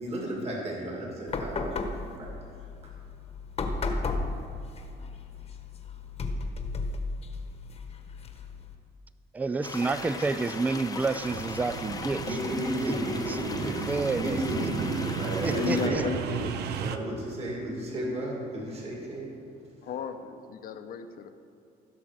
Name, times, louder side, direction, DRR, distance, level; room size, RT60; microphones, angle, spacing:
voice 1, 0.0-1.9 2.2-2.3 12.2-13.9 14.2-16.1 16.8-19.4, right 1 dB, 40° right, -2 dB, 2.4 m, -33 dB
sound 1, 1.3-8.7, left 3 dB, 40° left, 1.1 m, -34 dB
voice 2, 9.3-14.4 15.4-16.0, right 3 dB, 10° right, 14 dB, 0.3 m, -30 dB
sound 2, 9.6-15.9, left 3 dB, 20° left, 0.8 m, -39 dB
sound 3, 11.3-17.0, right 7 dB, 75° right, 0.7 m, -34 dB
voice 3, 15.5-16.5 19.8-21.3, left 8 dB, 60° left, 8 dB, 0.8 m, -34 dB
16.0 x 6.0 x 5.0 m, 2.6 s
cardioid pair, 110°, 17 cm